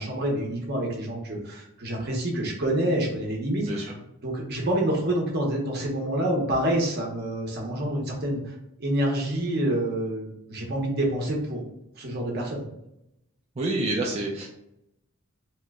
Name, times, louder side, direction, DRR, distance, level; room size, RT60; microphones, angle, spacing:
voice 1, 0.0-3.9 4.2-8.5 8.8-11.6 12.0-12.7, right 1 dB, 50° right, -1 dB, 0.8 m, -27 dB
voice 2, 13.6-14.5, right 2 dB, 30° right, -3 dB, 0.4 m, -28 dB
2.9 x 2.1 x 3.5 m, 0.82 s
head